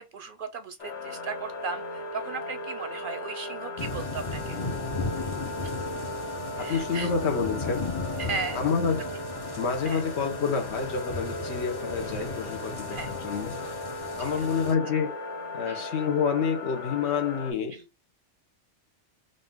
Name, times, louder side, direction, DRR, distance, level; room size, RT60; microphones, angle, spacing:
voice 1, 0.0-4.6 6.6-7.1 8.2-8.6 9.9-10.0 12.9-13.1 14.2-14.3 15.7-15.9 17.7-17.8, right 5 dB, 60° right, 0.6 m, -36 dB
sound 1, 0.8-17.5, left 2 dB, 90° left, 1.5 m, -37 dB
sound 2, 3.8-14.7, left 3 dB, 25° left, 0.7 m, -36 dB
voice 2, 6.6-7.9 8.5-9.1 9.6-13.7 14.2-15.2 15.5-17.8, left 6 dB, 70° left, 1.1 m, -28 dB
3.9 x 2.6 x 3.6 m
omnidirectional pair, 1.2 m